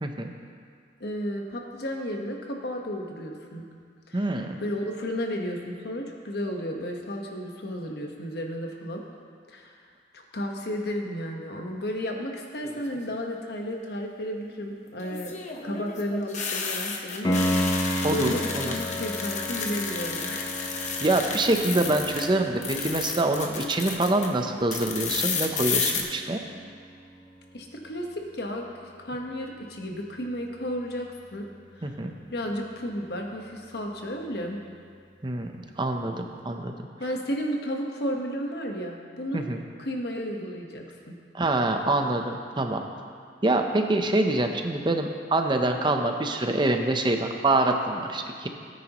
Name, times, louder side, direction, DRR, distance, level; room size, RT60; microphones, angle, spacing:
voice 1, 0.0-0.3 4.1-4.6 18.0-18.8 21.0-26.4 31.8-32.1 35.2-36.7 39.3-39.6 41.3-42.8 43.4-48.5, right 2 dB, 25° right, 4 dB, 0.8 m, -25 dB
voice 2, 1.0-3.6 4.1-4.3 4.6-9.0 9.5-9.8 10.1-15.3 15.6-17.4 17.7-20.5 27.5-31.5 31.8-31.9 32.3-34.6 37.0-39.5 39.8-41.2, equal, 65° left, 1 dB, 1.3 m, -33 dB
sound 1, 12.6-13.1 15.0-22.3 22.6-24.3 24.7-26.0, left 5 dB, 45° left, 1.1 m, -32 dB
Piano, 17.2-27.9 31.2-31.3, equal, 25° left, 0.8 m, -33 dB
18.0 x 9.4 x 3.0 m, 2.1 s
head